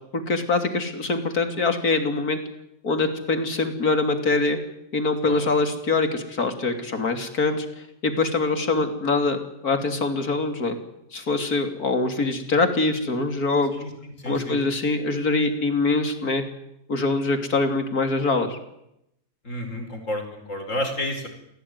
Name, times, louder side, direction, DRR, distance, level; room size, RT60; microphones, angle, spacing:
voice 1, 0.1-2.4 2.8-4.6 4.9-7.6 8.0-10.8 11.1-13.7 14.2-16.4 16.9-18.6, left 3 dB, 85° left, 7 dB, 3.5 m, -24 dB
voice 2, 13.7-14.6 19.4-21.3, left 1 dB, 60° left, 4 dB, 5.4 m, -31 dB
28.0 x 17.5 x 9.7 m, 0.83 s
omnidirectional pair, 1.5 m